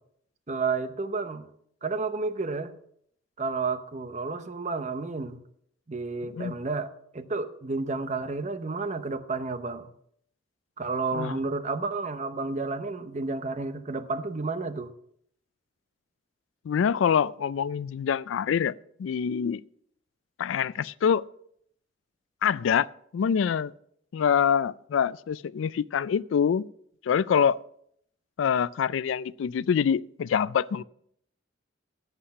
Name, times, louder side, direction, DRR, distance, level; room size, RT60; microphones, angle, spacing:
voice 1, 0.5-1.5 1.8-2.7 3.4-5.4 5.9-9.9 10.8-14.9, right 3 dB, 40° right, 0.8 m, -31 dB
voice 2, 16.7-18.7 19.0-19.6 20.4-21.2 22.4-22.9 23.1-23.7 24.1-26.6 27.0-27.6 28.4-30.8, left 7 dB, 80° left, 0.3 m, -25 dB
11.5 x 8.2 x 5.4 m
head